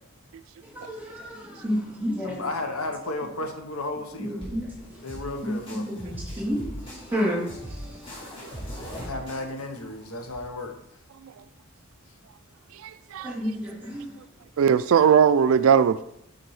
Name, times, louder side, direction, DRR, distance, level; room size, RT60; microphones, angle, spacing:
voice 1, 0.6-2.4 4.2-4.7 5.4-9.1 13.2-14.1, equal, 10° right, 3.0 m, -31 dB
voice 2, 2.2-4.5 4.9-6.0 8.9-10.8, left 2 dB, 80° left, 1.1 m, -34 dB
sound 1, 4.4-10.4, equal, 25° left, 2.5 m, -40 dB
voice 3, 12.8-13.3 14.6-16.0, right 7 dB, 70° right, 0.3 m, -19 dB
9.1 x 4.5 x 4.8 m
head